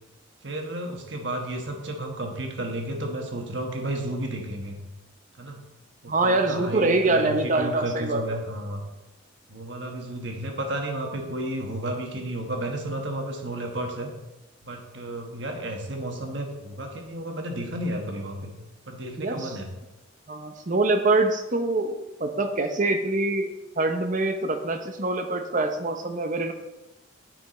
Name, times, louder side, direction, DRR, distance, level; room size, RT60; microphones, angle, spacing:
voice 1, 0.4-4.8 5.4-5.6 6.0-8.8 9.5-14.1 14.6-18.5 18.9-19.7, right 1 dB, 60° right, 3 dB, 1.4 m, -32 dB
voice 2, 6.1-8.4 19.2-19.5 20.3-26.5, right 2 dB, 40° right, 7 dB, 0.7 m, -25 dB
9.3 x 5.8 x 4.2 m, 1.0 s
head